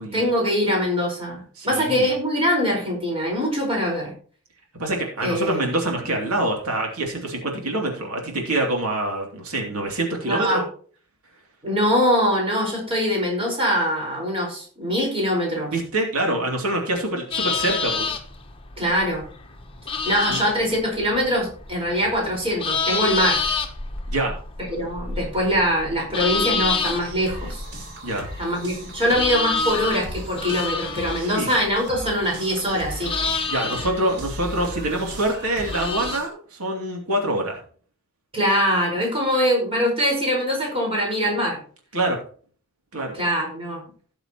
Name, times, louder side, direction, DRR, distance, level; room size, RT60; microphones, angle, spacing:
voice 1, 0.1-4.1 5.2-5.7 10.2-10.6 11.6-15.7 18.8-19.3 20.0-23.4 24.7-27.6 28.4-33.1 38.3-41.6 43.1-43.8, equal, 25° right, -1 dB, 4.7 m, -23 dB
voice 2, 1.6-2.1 4.8-10.6 15.7-18.1 20.3-20.4 24.1-24.3 28.0-28.3 31.2-31.5 33.5-37.6 41.9-42.2 42.9-43.2, right 1 dB, 90° right, 1 dB, 2.8 m, -25 dB
sound 1, 17.3-36.2, left 4 dB, 25° left, 1.3 m, -29 dB
sound 2, 27.0-36.3, equal, 55° right, 3.4 m, -38 dB
17.5 x 6.7 x 3.0 m, 0.44 s
head